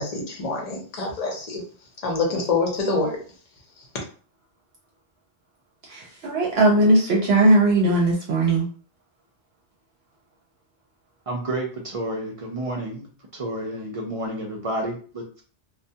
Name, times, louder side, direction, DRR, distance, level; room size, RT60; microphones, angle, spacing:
voice 1, 0.0-1.6 2.0-3.2, left 3 dB, 40° left, 0 dB, 0.7 m, -26 dB
voice 2, 5.8-8.7, right 2 dB, 70° right, -2 dB, 0.8 m, -19 dB
voice 3, 11.3-13.1 13.3-15.4, right 1 dB, 45° right, -1 dB, 0.5 m, -30 dB
2.2 x 2.2 x 2.7 m, 0.41 s
omnidirectional pair, 1.1 m